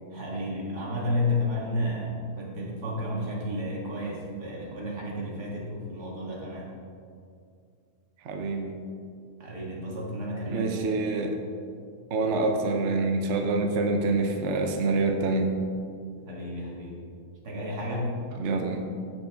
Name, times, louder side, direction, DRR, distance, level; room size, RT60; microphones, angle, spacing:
voice 1, 0.1-6.7 9.4-10.7 16.3-17.0 17.4-18.1, left 1 dB, 90° right, -3 dB, 2.4 m, -32 dB
voice 2, 8.2-8.8 10.5-11.4 12.1-15.6 18.4-18.9, right 3 dB, 55° right, 4 dB, 1.0 m, -26 dB
15.0 x 5.4 x 3.5 m, 2.3 s
omnidirectional pair, 1.6 m